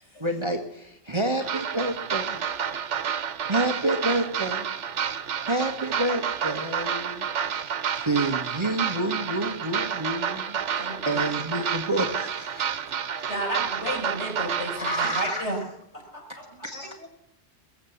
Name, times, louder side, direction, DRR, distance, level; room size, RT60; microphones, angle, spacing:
voice 1, 0.2-2.4 3.5-4.7 5.5-7.3 8.0-10.8 11.0-12.7 14.7-15.5, right 1 dB, 25° right, 4 dB, 1.3 m, -28 dB
sound 1, 1.4-15.3, right 8 dB, 85° right, 1.2 m, -30 dB
voice 2, 10.8-11.4 15.0-15.4 16.4-17.1, left 1 dB, 90° left, -1 dB, 6.0 m, -41 dB
voice 3, 13.3-15.6 15.9-16.5, right 1 dB, 75° left, 0 dB, 5.4 m, -32 dB
22.5 x 7.6 x 7.1 m, 0.79 s
omnidirectional pair, 1.2 m